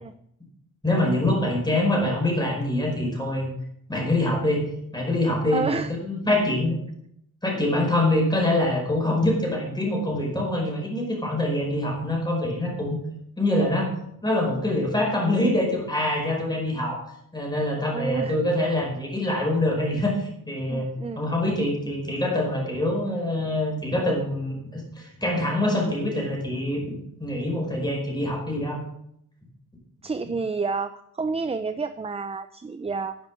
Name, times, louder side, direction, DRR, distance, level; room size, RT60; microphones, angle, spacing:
voice 1, 0.8-3.5 3.9-4.6 4.9-6.8 7.4-13.0 13.4-13.9 14.2-17.0 17.3-20.9 21.1-28.8, left 1 dB, 10° left, -1 dB, 5.0 m, -25 dB
voice 2, 5.5-5.9 17.9-18.3 20.7-21.2 30.0-33.2, right 4 dB, 15° right, 11 dB, 0.5 m, -29 dB
11.0 x 10.0 x 6.2 m, 0.75 s
wide cardioid pair, 125°, 35 cm